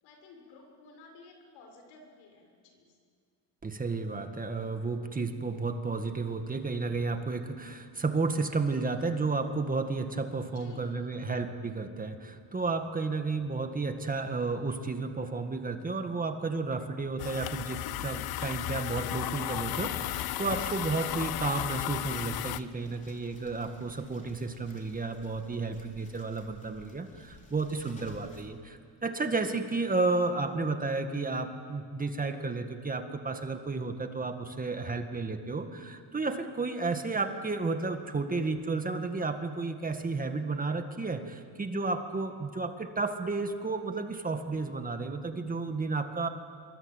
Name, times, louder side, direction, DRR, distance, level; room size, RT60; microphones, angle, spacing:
voice 1, 0.0-2.9 10.5-11.4, left 3 dB, 80° left, 3 dB, 6.7 m, -53 dB
voice 2, 3.6-46.3, right 3 dB, 20° right, 6 dB, 1.9 m, -32 dB
sound 1, 17.2-22.6, left 14 dB, 55° left, 0.8 m, -34 dB
sound 2, 20.0-28.5, left 2 dB, 15° left, 3.7 m, -54 dB
26.5 x 23.5 x 9.2 m, 2.2 s
cardioid pair, 120°, 44 cm